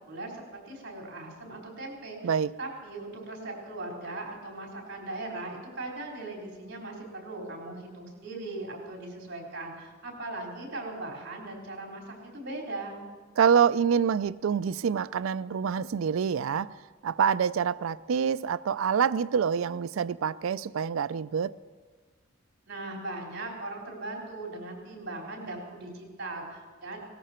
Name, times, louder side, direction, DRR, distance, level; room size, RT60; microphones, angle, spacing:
voice 1, 0.0-13.0 22.7-27.1, right 2 dB, 55° right, 4.1 m, -39 dB
voice 2, 13.4-16.7 17.0-21.5, right 7 dB, 85° right, 0.4 m, -26 dB
18.5 x 14.0 x 4.4 m
head